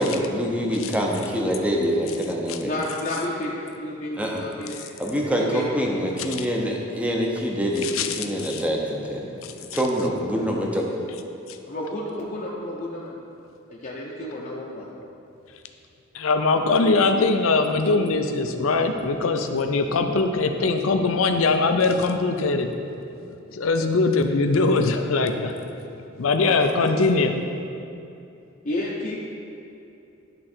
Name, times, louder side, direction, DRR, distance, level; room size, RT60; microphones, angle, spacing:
voice 1, 0.0-2.7 4.2-4.4 5.0-10.9, equal, 5° right, -1 dB, 0.7 m, -25 dB
voice 2, 2.6-5.7 11.7-13.2 13.7-14.9 26.4-26.7 28.6-29.2, left 1 dB, 40° left, -6 dB, 0.7 m, -31 dB
voice 3, 7.8-8.6 9.4-9.5 16.1-22.7 23.5-25.5 26.2-27.3, left 3 dB, 75° left, 6 dB, 0.5 m, -21 dB
11.0 x 3.7 x 4.4 m, 2.7 s
head